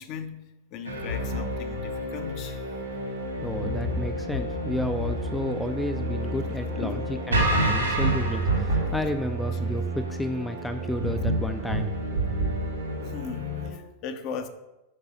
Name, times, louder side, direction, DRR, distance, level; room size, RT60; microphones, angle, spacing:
voice 1, 0.0-2.8 6.4-6.5 6.8-7.0 8.7-8.9 13.0-14.5, left 6 dB, 40° left, 8 dB, 0.6 m, -38 dB
sound 1, 0.8-13.7, right 1 dB, 75° right, 1.9 m, -28 dB
voice 2, 3.4-11.9, left 1 dB, 5° left, 6 dB, 0.4 m, -32 dB
6.7 x 4.7 x 5.2 m, 0.98 s
figure-of-eight pair, 90°, 0 cm